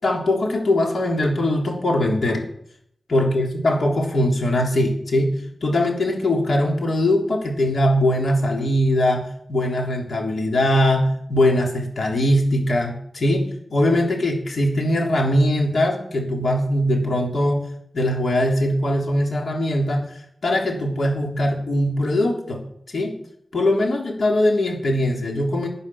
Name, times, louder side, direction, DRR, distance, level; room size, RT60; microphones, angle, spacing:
voice 1, 0.0-2.4 3.1-5.3 5.6-17.7 17.9-20.1 20.4-22.6 22.9-23.1 23.5-25.7, left 1 dB, 80° left, 0 dB, 3.4 m, -21 dB
16.0 x 9.7 x 5.9 m, 0.70 s
wide cardioid pair, 65°, 0 cm